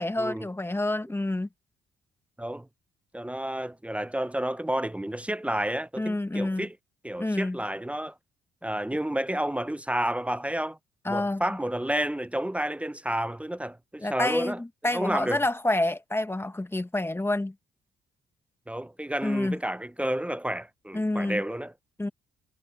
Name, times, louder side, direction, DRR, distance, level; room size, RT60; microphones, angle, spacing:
voice 1, 0.0-1.5 6.0-6.7 7.2-7.6 11.0-11.6 14.0-17.5 19.2-19.6 20.9-21.4 22.0-22.1, left 2 dB, 10° left, 1.2 m, -28 dB
voice 2, 3.1-6.7 7.0-8.1 8.6-10.8 11.1-14.6 14.9-15.4 18.7-21.7, right 1 dB, 5° right, 0.5 m, -30 dB
cardioid pair, 90°, 20 cm